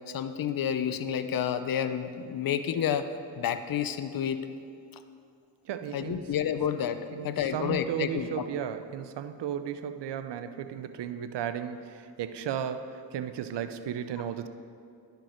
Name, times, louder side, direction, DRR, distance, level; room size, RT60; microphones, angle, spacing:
voice 1, 0.1-3.1 3.4-4.4 5.9-8.4, left 9 dB, 55° left, 10 dB, 0.6 m, -30 dB
voice 2, 5.7-6.3 7.1-14.5, right 9 dB, 75° right, 10 dB, 0.6 m, -35 dB
11.0 x 5.2 x 4.3 m, 2.4 s
cardioid pair, 50°, 42 cm